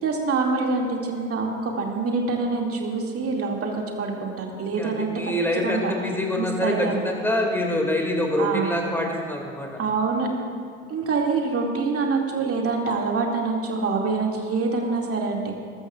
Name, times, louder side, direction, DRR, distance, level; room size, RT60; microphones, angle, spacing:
voice 1, 0.0-5.1 5.6-5.9 6.4-7.0 8.4-8.7 9.8-10.3 10.9-15.6, right 4 dB, 35° right, 0 dB, 2.6 m, -25 dB
voice 2, 4.8-9.7, left 1 dB, 5° left, 0 dB, 2.5 m, -25 dB
21.0 x 13.0 x 2.5 m, 2.4 s
figure-of-eight pair, 65°, 39 cm